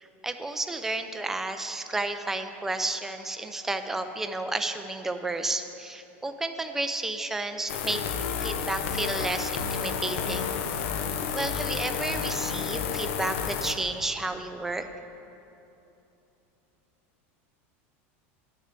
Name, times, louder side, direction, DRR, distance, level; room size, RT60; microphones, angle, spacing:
voice 1, 0.0-8.0 8.4-10.5 11.3-14.9, right 2 dB, 5° right, 7 dB, 0.4 m, -32 dB
sound 1, 7.7-13.7, left 7 dB, 65° left, 0.8 m, -30 dB
12.0 x 6.7 x 8.1 m, 2.9 s
supercardioid pair, 170°, 7 cm